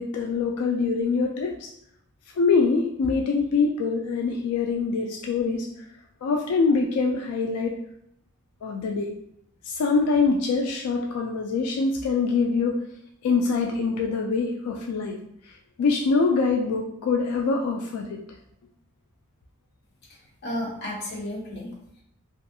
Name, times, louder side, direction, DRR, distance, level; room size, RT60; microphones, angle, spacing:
voice 1, 0.0-1.7 2.4-5.7 6.2-7.8 8.6-9.1 9.6-12.8 13.2-15.2 15.5-18.2, left 4 dB, 90° left, 2 dB, 0.3 m, -24 dB
voice 2, 20.1-22.0, left 1 dB, 50° left, -3 dB, 0.8 m, -34 dB
2.6 x 2.4 x 2.6 m, 0.73 s
head